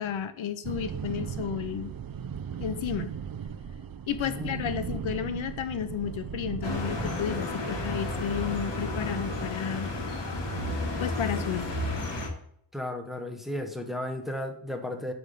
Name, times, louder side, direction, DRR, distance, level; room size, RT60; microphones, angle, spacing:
voice 1, 0.0-1.9 2.6-3.1 4.1-9.9 11.0-11.7, left 8 dB, 80° left, 10 dB, 0.8 m, -32 dB
sound 1, 0.6-7.5, right 7 dB, 50° right, 0.6 m, -37 dB
voice 2, 4.2-4.6 12.7-15.1, left 1 dB, ahead, 4 dB, 1.1 m, -34 dB
sound 2, 6.6-12.3, left 1 dB, 65° left, 2.2 m, -32 dB
9.4 x 3.5 x 6.6 m, 0.68 s
wide cardioid pair, 105°, 46 cm